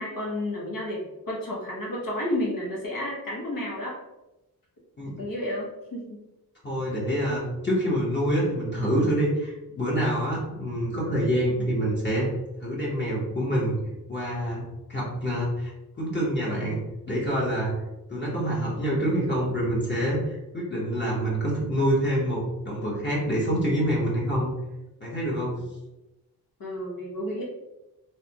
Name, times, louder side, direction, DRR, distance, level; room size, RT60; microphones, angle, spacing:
voice 1, 0.0-4.0 5.2-6.2 11.6-11.7 25.5-25.6 26.6-27.4, left 1 dB, 65° left, -4 dB, 0.9 m, -31 dB
voice 2, 6.6-12.3 12.6-13.8 14.1-14.6 14.9-15.7 16.0-17.7 18.1-24.5 25.0-25.5, equal, 30° left, -6 dB, 0.9 m, -26 dB
3.2 x 2.1 x 2.8 m, 0.97 s
cardioid pair, 85°, 37 cm